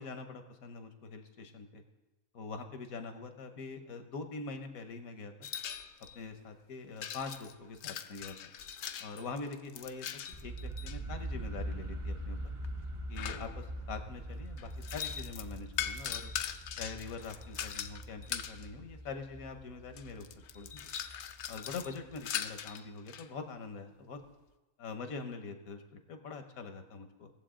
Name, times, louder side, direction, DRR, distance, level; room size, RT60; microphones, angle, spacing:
voice 1, 0.0-1.8 2.3-5.5 6.1-8.5 9.0-12.4 13.1-16.3 16.8-20.9 21.5-24.2 24.8-27.3, left 4 dB, 80° left, 7 dB, 1.5 m, -44 dB
sound 1, 5.4-6.2 7.0-11.0 11.9-13.8 14.6-18.7 19.6-19.7 20.0-23.3, left 9 dB, 65° left, 0.8 m, -41 dB
sound 2, 10.3-22.2, right 1 dB, 30° right, 0.6 m, -43 dB
18.5 x 7.5 x 3.7 m, 1.1 s
omnidirectional pair, 1.5 m